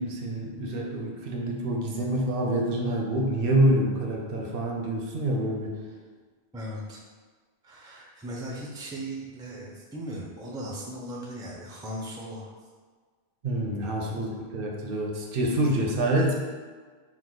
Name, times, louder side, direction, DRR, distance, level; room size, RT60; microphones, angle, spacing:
voice 1, 0.0-5.8 13.4-16.3, right 1 dB, 65° right, 0 dB, 0.7 m, -26 dB
voice 2, 6.5-7.0 7.6-12.5 14.1-14.3, right 1 dB, 5° right, -3 dB, 0.4 m, -38 dB
4.6 x 2.3 x 3.8 m, 1.5 s
omnidirectional pair, 1.1 m